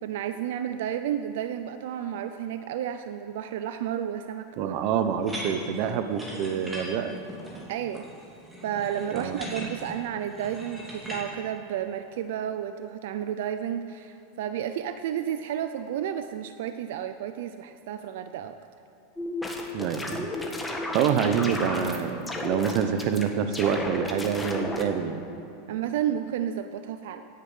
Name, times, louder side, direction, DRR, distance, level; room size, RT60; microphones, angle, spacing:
voice 1, 0.0-4.7 7.7-8.1 8.6-18.6 25.7-27.2, right 10 dB, 70° right, 9 dB, 0.6 m, -32 dB
voice 2, 4.6-7.1 9.1-9.4 19.7-20.3 20.9-25.2, right 7 dB, 45° right, 9 dB, 1.0 m, -26 dB
sound 1, 5.2-11.2, right 1 dB, 10° right, 2.8 m, -40 dB
sound 2, 19.2-22.0 22.3-23.2 23.5-24.9, left 2 dB, 5° left, 1.4 m, -33 dB
17.0 x 10.5 x 5.7 m, 2.9 s
supercardioid pair, 160°, 0 cm